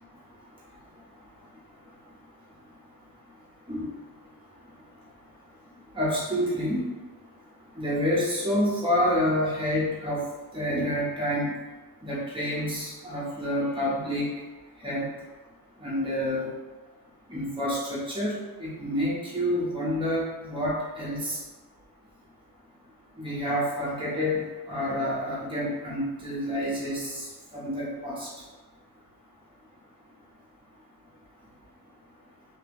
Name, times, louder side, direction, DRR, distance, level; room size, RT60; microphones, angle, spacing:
voice 1, 5.9-6.8 7.8-10.2 10.5-11.5 12.0-14.3 14.8-15.1 15.8-16.5 17.3-21.4 23.2-27.3 27.5-28.3, equal, 15° right, -7 dB, 0.9 m, -28 dB
2.9 x 2.9 x 3.4 m, 1.2 s
wide cardioid pair, 130°, 39 cm